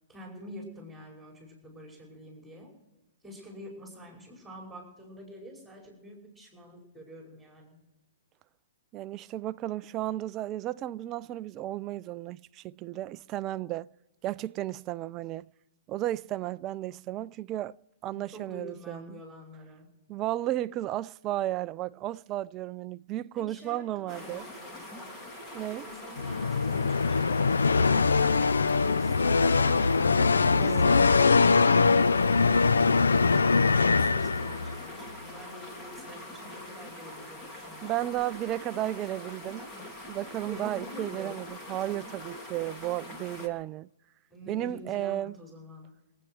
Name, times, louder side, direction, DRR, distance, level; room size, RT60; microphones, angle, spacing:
voice 1, 0.1-2.7 3.2-7.8 18.1-19.9 23.3-25.2 25.8-28.3 31.5-38.1 40.5-41.4 44.3-45.9, equal, 5° right, 5.4 m, -47 dB
voice 2, 8.9-13.9 14.2-15.5 15.9-17.7 18.0-19.2 20.1-24.4 25.5-25.9 30.6-30.9 37.8-39.7 40.1-43.9 44.5-45.3, right 14 dB, 30° right, 0.4 m, -33 dB
sound 1, 24.1-43.5, left 1 dB, 25° left, 2.9 m, -43 dB
sound 2, 26.2-34.8, left 4 dB, 85° left, 0.6 m, -22 dB
27.0 x 9.0 x 4.8 m
hypercardioid pair, 125°, 0 cm